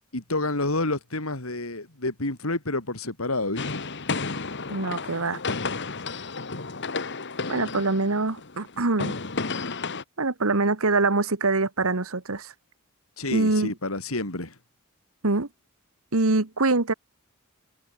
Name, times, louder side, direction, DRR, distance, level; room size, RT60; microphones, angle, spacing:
voice 1, 0.1-3.8 13.2-14.6, left 2 dB, 75° left, 3.9 m, -29 dB
sound 1, 3.6-10.0, left 4 dB, 55° left, 2.1 m, -32 dB
voice 2, 4.7-5.4 7.5-9.1 10.2-12.5 13.3-13.7 15.2-15.5 16.1-16.9, right 3 dB, 75° right, 1.6 m, -24 dB
head